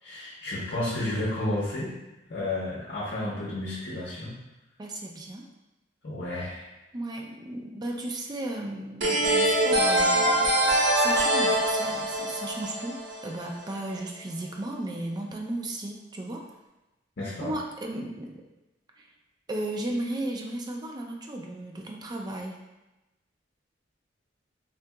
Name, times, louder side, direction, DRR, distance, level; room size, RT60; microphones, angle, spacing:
voice 1, 0.0-1.9 2.3-4.3 6.0-6.7 17.2-17.5, left 1 dB, 60° left, -6 dB, 0.7 m, -31 dB
voice 2, 4.8-5.5 6.9-10.5 11.0-16.4 17.4-18.4 19.0-19.1 19.5-22.6, right 1 dB, 20° right, 1 dB, 0.3 m, -35 dB
sound 1, 9.0-13.6, right 1 dB, 70° right, 0.7 m, -24 dB
3.7 x 2.7 x 2.3 m, 1.0 s
head